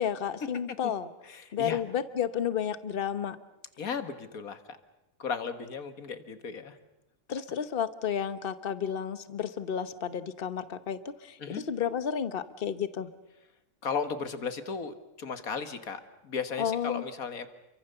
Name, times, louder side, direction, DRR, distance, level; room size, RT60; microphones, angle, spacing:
voice 1, 0.0-1.1 1.5-3.4 7.3-13.1 16.6-17.0, left 8 dB, 45° left, 12 dB, 1.2 m, -32 dB
voice 2, 1.3-1.8 3.8-4.8 5.2-6.8 11.4-11.6 13.8-17.5, left 6 dB, 80° left, 10 dB, 2.1 m, -35 dB
29.0 x 24.0 x 6.9 m, 0.91 s
omnidirectional pair, 1.5 m